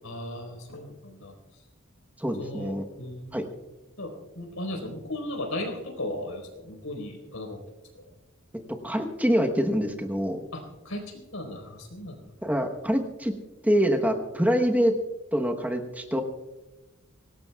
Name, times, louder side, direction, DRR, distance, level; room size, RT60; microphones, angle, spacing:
voice 1, 0.0-1.3 2.4-3.4 4.0-7.6 7.9-8.1 10.5-12.3, left 1 dB, 85° left, 3 dB, 4.2 m, -36 dB
voice 2, 2.2-2.8 3.3-3.4 8.8-10.4 12.4-13.3 13.6-14.9 15.3-16.2, equal, 5° right, 4 dB, 1.0 m, -25 dB
24.5 x 18.5 x 2.3 m, 1.1 s
head